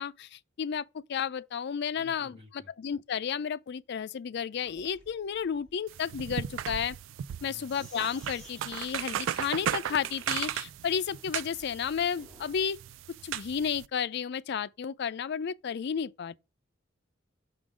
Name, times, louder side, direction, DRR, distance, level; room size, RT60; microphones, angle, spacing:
voice 1, 0.0-7.0 7.4-12.8 13.2-16.3, left 7 dB, 60° left, 0.4 m, -32 dB
voice 2, 1.9-2.7 7.4-7.7, left 2 dB, 30° right, 1.7 m, -53 dB
Sink (filling or washing), 4.6-12.6, left 1 dB, 5° left, 2.2 m, -56 dB
sound 1, 5.9-13.9, right 10 dB, 80° right, 0.3 m, -36 dB
6.0 x 3.8 x 4.8 m
head